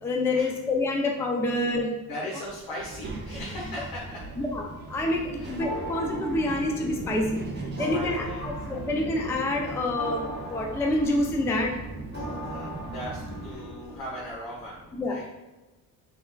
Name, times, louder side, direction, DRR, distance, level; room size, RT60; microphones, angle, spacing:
voice 1, 0.0-1.9 4.4-7.4 7.8-11.7 14.9-15.3, left 2 dB, 10° left, 1 dB, 0.3 m, -27 dB
voice 2, 2.1-4.2 5.3-5.5 7.8-8.8 12.2-14.8 15.0-15.2, equal, 85° left, -6 dB, 1.3 m, -38 dB
Child speech kid speaking, 2.8-13.6, right 2 dB, 30° right, 0.7 m, -39 dB
sound 1, 5.6-14.3, right 1 dB, 30° left, 1.2 m, -39 dB
5.4 x 3.4 x 2.2 m, 1.1 s
cardioid pair, 145°, 35 cm